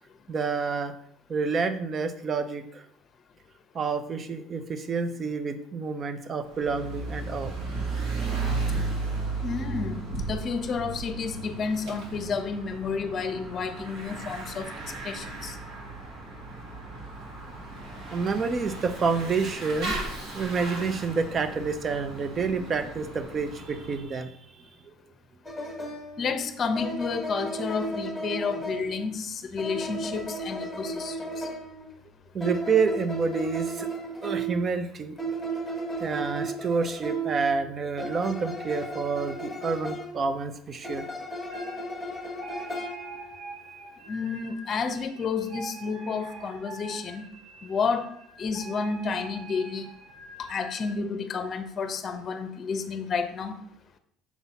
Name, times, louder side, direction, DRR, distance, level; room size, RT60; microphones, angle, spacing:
voice 1, 0.3-0.9 1.3-2.8 3.7-7.5 18.1-19.9 20.3-24.3 32.3-33.9 34.2-35.1 36.0-41.0, right 4 dB, 30° right, 11 dB, 0.6 m, -28 dB
Bicycle / Mechanisms, 6.4-24.0, right 3 dB, 60° right, 2.0 m, -35 dB
voice 2, 9.4-14.7 15.0-15.6 26.2-31.5 44.1-47.3 47.6-48.1 48.4-49.9 50.4-53.6, left 5 dB, 35° left, 8 dB, 0.7 m, -31 dB
sound 1, 25.4-29.1 29.6-31.9 32.4-34.7 35.2-37.6 38.0-40.2 40.8-43.5, right 2 dB, 5° left, 1.4 m, -35 dB
sound 2, 41.5-41.9 42.3-51.0, right 3 dB, 80° right, 1.0 m, -44 dB
5.9 x 4.0 x 4.1 m, 0.69 s
cardioid pair, 130°, 0 cm